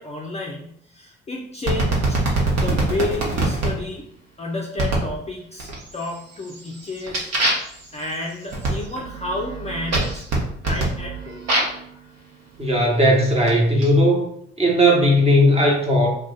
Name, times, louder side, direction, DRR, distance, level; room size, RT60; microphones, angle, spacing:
voice 1, 0.0-2.2 2.5-4.1 4.4-7.3 7.9-10.2 10.6-11.4, left 2 dB, 20° left, -2 dB, 0.5 m, -31 dB
sound 1, 1.7-3.7 4.8-5.1 5.6-6.1 6.5-11.8 12.6-13.9, right 2 dB, 55° right, 1.1 m, -24 dB
voice 2, 12.6-14.3 14.6-16.1, equal, 20° right, -2 dB, 1.1 m, -17 dB
2.4 x 2.3 x 3.8 m, 0.70 s
hypercardioid pair, 50°, 30 cm